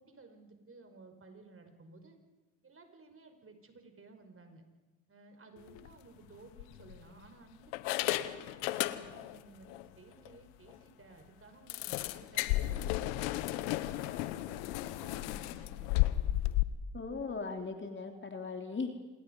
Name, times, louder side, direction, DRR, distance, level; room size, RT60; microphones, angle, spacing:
voice 1, 0.0-2.2 2.6-4.6 5.1-13.1 13.6-15.9, right 3 dB, 35° right, 6 dB, 5.3 m, -56 dB
sound 1, 5.7-5.9 6.6-7.3 7.7-9.4 9.7-9.8 10.3-10.4 10.7-10.8 11.7-16.6, left 16 dB, 80° left, 1.0 m, -33 dB
voice 2, 16.9-18.9, left 4 dB, 30° left, 5 dB, 3.3 m, -38 dB
27.0 x 20.5 x 5.5 m, 1.2 s
hypercardioid pair, 60°, 37 cm